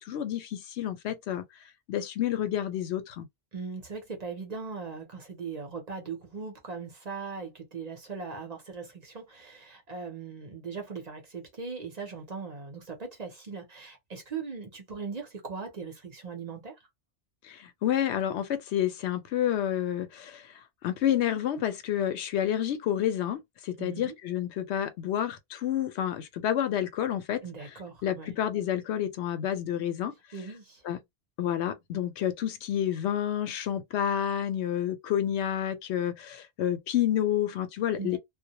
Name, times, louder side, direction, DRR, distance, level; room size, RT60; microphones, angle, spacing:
voice 1, 0.1-1.4 1.9-3.3 17.5-17.6 17.8-20.4 20.8-27.4 28.0-30.1 30.9-31.0 31.4-38.2, left 10 dB, 90° left, 0.9 m, -29 dB
voice 2, 3.5-16.7 23.8-24.1 27.4-28.3 30.3-30.8 38.0-38.2, right 5 dB, 45° right, 0.7 m, -39 dB
2.1 x 2.1 x 2.8 m
omnidirectional pair, 1.1 m